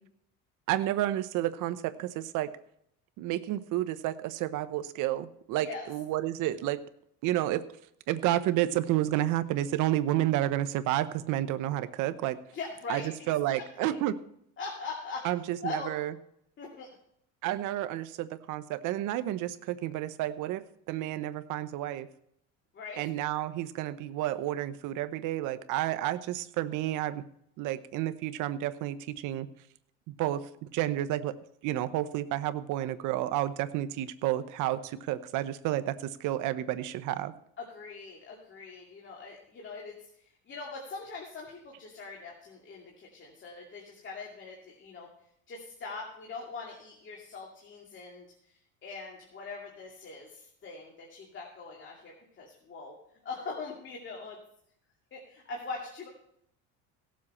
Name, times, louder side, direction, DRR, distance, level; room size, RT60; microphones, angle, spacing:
voice 1, 0.7-2.5 3.2-6.8 7.2-7.6 8.1-12.4 12.9-13.0 13.3-14.2 15.2-16.1 17.4-22.1 23.0-27.2 27.6-29.5 30.1-31.3 31.6-37.3, right 14 dB, 65° right, 13 dB, 0.9 m, -30 dB
voice 2, 12.5-14.0 14.6-15.3 15.6-15.9 16.6-16.9 22.7-23.0 37.6-45.1 45.5-53.0 53.2-54.4 55.1-56.1, left 4 dB, 35° left, -2 dB, 2.4 m, -42 dB
17.0 x 7.5 x 4.3 m, 0.73 s
cardioid pair, 110°, 33 cm